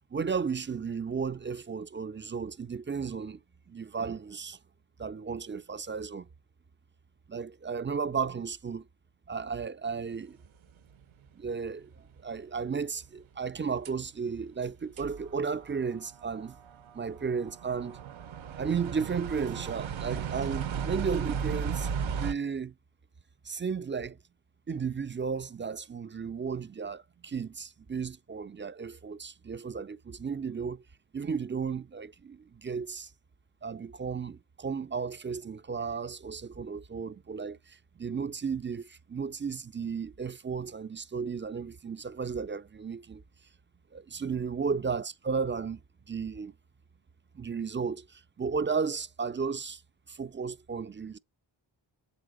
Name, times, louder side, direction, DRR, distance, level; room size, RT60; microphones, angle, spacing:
voice 1, 0.1-3.4 3.7-4.6 5.0-6.3 7.3-8.9 9.3-10.4 11.3-16.6 16.9-18.0 18.6-22.7 23.4-24.2 24.7-30.8 31.1-33.1 33.6-43.2 43.9-45.8 46.1-46.5 47.3-49.8 50.1-51.2, right 5 dB, 25° right, 0.4 m, -34 dB
sound 1, 11.1-11.2 13.8-13.9 14.6-14.7 15.0-22.3, right 7 dB, 70° right, 0.6 m, -36 dB
7.5 x 3.9 x 4.9 m
cardioid pair, 45°, 49 cm